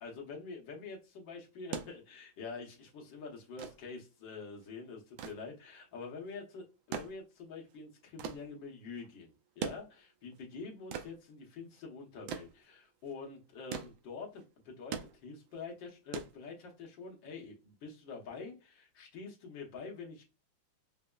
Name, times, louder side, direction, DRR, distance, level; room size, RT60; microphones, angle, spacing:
voice 1, 0.0-20.2, left 4 dB, 65° left, 0 dB, 1.6 m, -46 dB
sound 1, 1.5-17.0 18.2-18.3, right 7 dB, 75° right, 1.3 m, -45 dB
5.1 x 2.0 x 2.2 m, 0.30 s
omnidirectional pair, 2.3 m